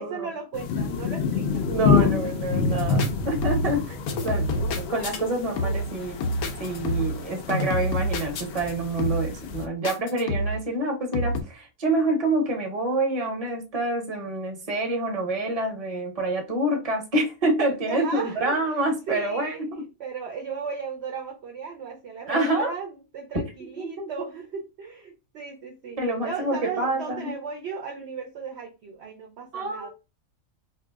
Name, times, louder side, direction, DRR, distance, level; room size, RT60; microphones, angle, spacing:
voice 1, 0.0-3.0 17.9-19.6 20.0-29.9, right 5 dB, 60° right, 2 dB, 0.7 m, -36 dB
sound 1, 0.5-9.6, left 5 dB, 65° left, 0.7 m, -28 dB
voice 2, 1.7-6.2 6.6-19.8 22.3-22.7 23.8-24.1 26.0-27.3 29.5-29.9, right 2 dB, 30° right, 3 dB, 0.8 m, -27 dB
sound 2, 2.8-3.1 3.4-5.2 5.6-5.9 6.2-7.2 7.5-8.7 9.0-9.4 9.8-10.7 11.1-11.4, equal, 90° left, 1.2 m, -27 dB
2.8 x 2.7 x 3.4 m, 0.29 s
omnidirectional pair, 1.5 m